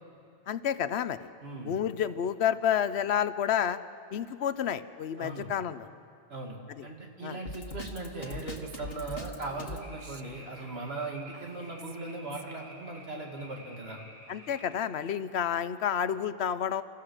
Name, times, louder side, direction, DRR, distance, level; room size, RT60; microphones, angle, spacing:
voice 1, 0.5-1.3 1.6-3.8 4.1-5.9 6.8-6.9 7.2-7.4 14.3-16.8, left 9 dB, 80° left, 14 dB, 1.0 m, -30 dB
voice 2, 1.4-1.8 5.2-5.5 6.3-14.0, right 2 dB, 70° right, 0 dB, 2.9 m, -39 dB
Drum kit, 7.4-9.9, left 1 dB, 65° left, 1.8 m, -40 dB
Female speech woman speaking, 8.1-12.7, right 6 dB, 55° right, 0.9 m, -51 dB
sound 1, 9.8-14.8, equal, 30° right, 6.3 m, -51 dB
30.0 x 14.5 x 6.5 m, 2.6 s
omnidirectional pair, 1.1 m